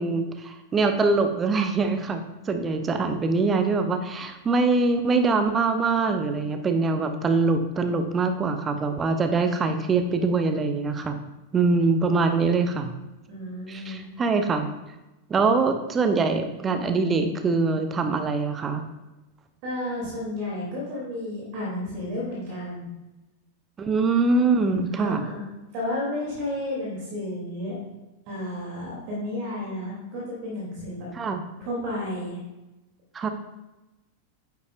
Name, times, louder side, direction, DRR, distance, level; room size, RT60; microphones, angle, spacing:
voice 1, 0.0-11.2 11.5-12.9 13.7-14.7 15.3-18.8 23.8-25.3 31.1-31.4 33.1-33.3, right 4 dB, 20° right, 7 dB, 0.8 m, -23 dB
voice 2, 13.3-14.1 19.6-22.9 25.0-25.4 25.7-27.8 28.3-31.1 31.6-32.4, left 1 dB, 45° right, -3 dB, 2.8 m, -32 dB
9.5 x 8.1 x 2.5 m, 1.0 s
figure-of-eight pair, 90°, 0 cm